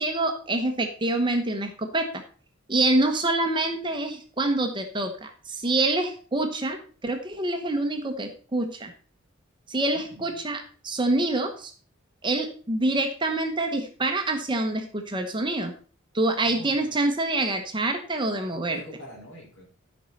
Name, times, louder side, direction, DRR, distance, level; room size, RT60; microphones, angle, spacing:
voice 1, 0.0-2.2 2.7-8.9 9.7-11.7 12.2-15.7 16.1-18.8, right 2 dB, 20° right, 5 dB, 0.9 m, -26 dB
voice 2, 9.9-10.4 16.4-16.9 18.4-19.6, equal, 60° left, -3 dB, 4.4 m, -45 dB
13.0 x 5.4 x 4.1 m, 0.40 s
head